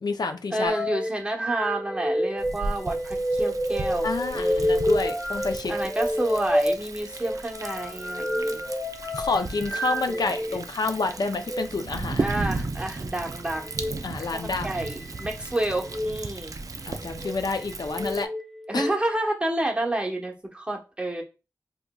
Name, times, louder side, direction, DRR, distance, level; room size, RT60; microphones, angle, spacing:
voice 1, 0.0-0.7 4.0-5.9 9.2-12.3 14.0-14.7 16.9-18.3 18.7-18.9, left 3 dB, 75° left, 0.5 m, -29 dB
voice 2, 0.5-4.1 4.3-4.8 5.7-8.6 10.1-10.6 12.2-13.7 14.2-16.6 18.7-21.2, right 1 dB, 15° right, 1.0 m, -30 dB
sound 1, 0.7-10.6 11.4-11.7 13.6-14.0 14.8-15.3 15.8-16.1 16.9-17.4 17.9-19.0, equal, 5° left, 0.6 m, -28 dB
Thunder, 2.4-18.3, right 3 dB, 55° right, 0.4 m, -35 dB
3.8 x 2.9 x 2.3 m
cardioid pair, 45°, 7 cm